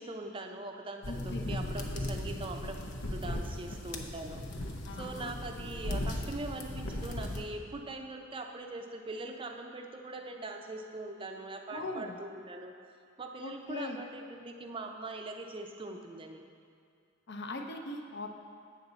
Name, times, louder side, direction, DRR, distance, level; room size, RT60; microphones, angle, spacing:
voice 1, 0.0-2.8 3.1-4.7 5.0-12.7 13.2-16.4, right 2 dB, 25° right, 3 dB, 0.5 m, -42 dB
sound 1, 1.0-7.4, left 1 dB, 90° left, 0.7 m, -37 dB
voice 2, 1.1-1.4 4.8-5.3 11.7-12.2 13.4-14.0 17.3-18.3, left 2 dB, 55° left, 4 dB, 0.6 m, -40 dB
7.8 x 6.7 x 4.0 m, 2.3 s
head